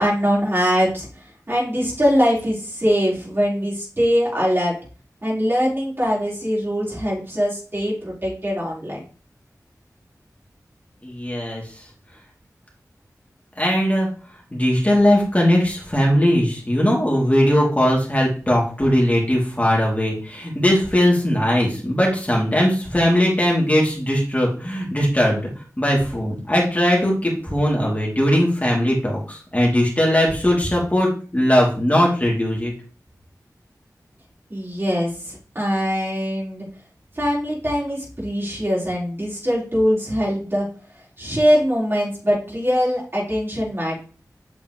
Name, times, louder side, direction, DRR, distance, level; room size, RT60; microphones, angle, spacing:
voice 1, 0.0-4.7 5.2-9.0 34.5-36.7 37.1-40.7 41.2-44.0, equal, 35° right, -5 dB, 4.6 m, -22 dB
voice 2, 11.0-11.6 13.6-14.1 14.5-25.4 25.8-32.7, equal, 20° left, -3 dB, 3.2 m, -19 dB
8.3 x 6.7 x 3.3 m, 0.38 s
cardioid pair, 45°, 7 cm